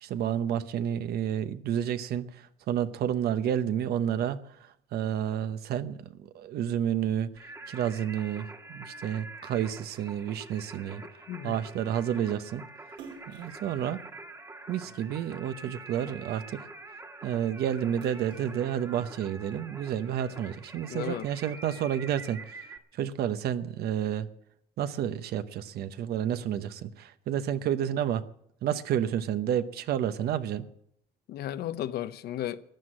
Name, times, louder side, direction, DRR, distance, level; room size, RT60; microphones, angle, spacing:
voice 1, 0.0-2.3 2.7-4.4 4.9-6.0 6.3-7.3 7.7-11.0 11.4-12.6 13.3-14.0 14.7-16.6 17.2-22.4 22.9-24.3 24.8-28.2 28.6-30.7, right 10 dB, 70° right, 0.9 m, -30 dB
Singing, 7.4-22.8, right 2 dB, 20° right, 1.5 m, -46 dB
voice 2, 11.3-11.6 20.9-21.3 31.3-32.6, left 12 dB, 70° left, 0.8 m, -34 dB
Splash splatter, 12.9-15.4 15.9-17.4 17.7-19.4, right 5 dB, 85° right, 3.1 m, -52 dB
14.5 x 9.6 x 7.6 m
cardioid pair, 110°, 17 cm